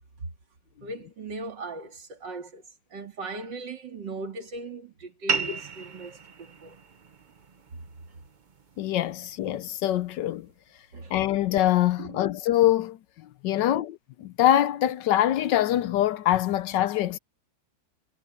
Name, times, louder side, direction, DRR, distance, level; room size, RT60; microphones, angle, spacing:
voice 1, 0.8-2.6 2.9-6.8 7.7-7.8 10.9-11.1 12.0-12.2 13.6-13.8, right 3 dB, 65° right, 3.1 m, -39 dB
sound 1, 5.3-10.3, right 5 dB, 45° right, 0.6 m, -36 dB
voice 2, 8.8-10.5 11.1-13.0 13.4-17.2, left 12 dB, 75° left, 1.2 m, -24 dB
omnidirectional pair, 2.1 m